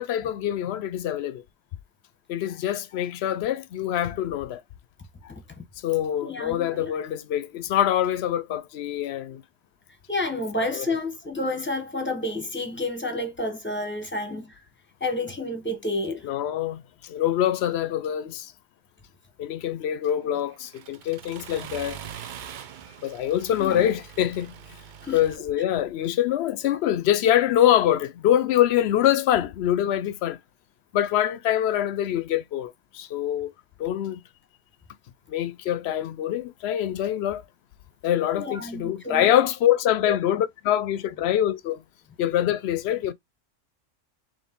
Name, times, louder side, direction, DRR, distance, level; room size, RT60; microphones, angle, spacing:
voice 1, 0.0-1.4 2.3-4.6 5.8-9.4 10.7-10.9 16.2-18.5 19.4-22.0 23.0-24.6 25.1-30.4 30.9-33.5 33.8-34.2 35.3-37.4 38.0-41.8 42.2-43.1, left 11 dB, 65° left, 0.7 m, -24 dB
voice 2, 6.2-6.9 10.1-14.6 15.0-16.3 23.6-23.9 25.0-25.2 38.3-39.3 40.1-40.2, left 2 dB, 10° left, 1.0 m, -30 dB
Accelerating revving vroom, 20.1-25.4, right 9 dB, 55° right, 0.5 m, -43 dB
4.2 x 3.1 x 3.5 m
omnidirectional pair, 1.2 m